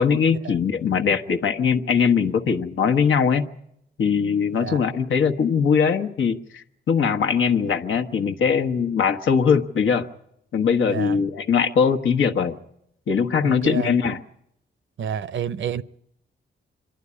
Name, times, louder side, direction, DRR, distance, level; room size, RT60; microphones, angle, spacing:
voice 1, 0.0-3.5 4.0-10.1 10.5-12.5 13.1-14.2, left 6 dB, 80° left, 1.3 m, -21 dB
voice 2, 10.9-11.2 13.4-14.1 15.0-15.8, right 8 dB, 75° right, 0.7 m, -29 dB
25.0 x 11.5 x 9.8 m
wide cardioid pair, 120°, 20 cm